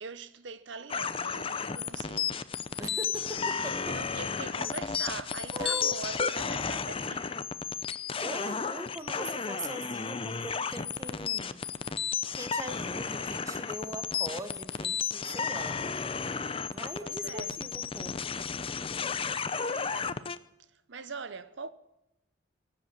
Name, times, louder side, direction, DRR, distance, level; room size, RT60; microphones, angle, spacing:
voice 1, 0.0-2.4 3.9-7.3 17.0-17.6 19.7-20.3 20.9-21.7, right 4 dB, 60° right, 0.9 m, -42 dB
sound 1, 0.9-20.4, left 6 dB, 30° left, 0.5 m, -33 dB
voice 2, 2.8-4.0 5.5-6.0 8.2-11.7 12.3-15.8 16.7-18.3, right 1 dB, 15° right, 1.0 m, -41 dB
18.5 x 7.9 x 8.6 m
head